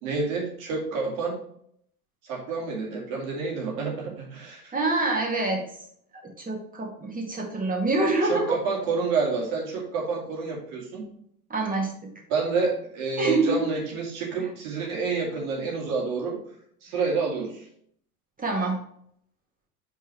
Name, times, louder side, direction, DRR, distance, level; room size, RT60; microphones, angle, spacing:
voice 1, 0.0-1.4 2.2-4.7 8.2-11.1 12.3-16.4 16.8-17.6, right 4 dB, 65° right, -2 dB, 2.7 m, -28 dB
voice 2, 4.7-5.6 6.4-8.6 11.5-11.9 13.2-13.7 18.4-18.8, right 2 dB, 20° right, -1 dB, 2.5 m, -25 dB
5.6 x 4.6 x 4.6 m, 0.67 s
figure-of-eight pair, 75°, 45 cm